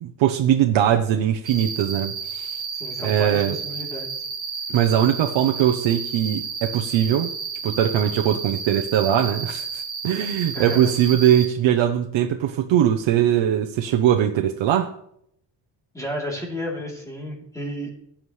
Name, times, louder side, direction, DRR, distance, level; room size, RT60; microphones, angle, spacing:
voice 1, 0.0-2.6 3.0-3.6 4.7-7.3 7.6-14.9, right 10 dB, 80° right, 4 dB, 0.9 m, -21 dB
Cricket, 1.5-11.5, right 5 dB, 30° right, 1.8 m, -32 dB
voice 2, 2.7-4.2 10.2-10.9 15.9-17.9, equal, 5° left, -2 dB, 3.2 m, -32 dB
16.5 x 7.3 x 3.2 m, 0.73 s
cardioid pair, 145°, 45 cm